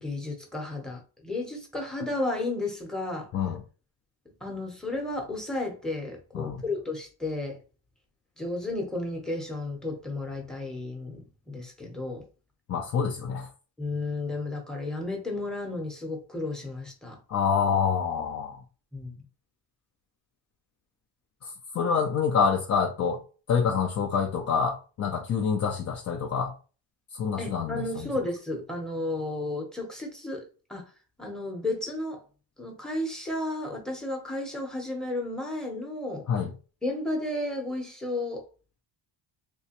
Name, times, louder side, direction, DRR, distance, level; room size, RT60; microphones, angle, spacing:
voice 1, 0.0-3.3 4.4-7.6 8.4-12.2 13.8-17.2 18.9-19.2 27.4-30.4 30.7-30.8 31.2-32.2 32.6-36.2 36.8-38.5, left 2 dB, ahead, 0.8 m, -33 dB
voice 2, 12.7-13.5 17.3-18.6 21.4-23.2 23.5-26.5 27.1-27.8 36.3-36.5, left 6 dB, 35° left, 0.4 m, -26 dB
3.3 x 2.9 x 2.9 m
cardioid pair, 160°, 45 cm